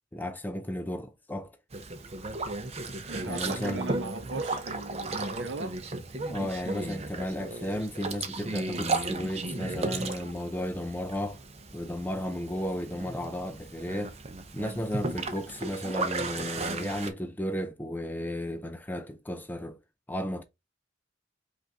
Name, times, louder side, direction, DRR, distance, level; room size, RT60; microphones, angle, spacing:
voice 1, 0.1-1.5 3.3-3.9 6.3-11.4 11.7-14.2 14.5-19.8 20.1-20.4, left 1 dB, 10° left, 0.4 m, -34 dB
Boat Water vehicle, 1.7-17.1, right 3 dB, 35° right, 0.6 m, -35 dB
voice 2, 3.1-5.8, right 3 dB, 70° right, 0.8 m, -38 dB
5.2 x 2.6 x 3.5 m
head